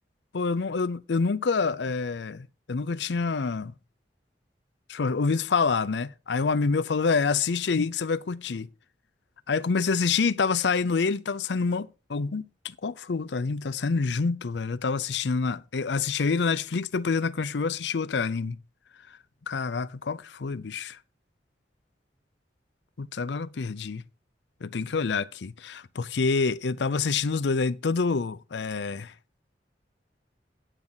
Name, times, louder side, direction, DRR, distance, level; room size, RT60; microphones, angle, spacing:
voice 1, 0.3-3.7 4.9-8.7 9.5-18.6 19.5-21.0 23.0-24.0 24.6-29.1, left 4 dB, 75° left, 0.5 m, -27 dB
9.9 x 8.8 x 4.0 m
head